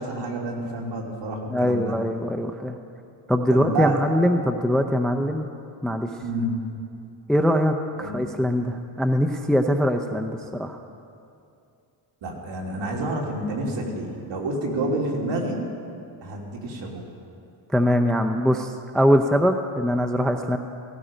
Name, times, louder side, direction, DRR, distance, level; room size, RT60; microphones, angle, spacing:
voice 1, 0.0-1.9 3.5-4.0 6.2-6.5 8.0-8.2 12.2-15.6 16.2-17.0, right 2 dB, 60° right, -1 dB, 3.1 m, -29 dB
voice 2, 1.5-2.8 3.3-5.5 5.8-6.1 7.3-10.8 17.7-20.6, equal, ahead, 6 dB, 0.5 m, -22 dB
17.0 x 16.5 x 5.1 m, 2.5 s
cardioid pair, 140°, 49 cm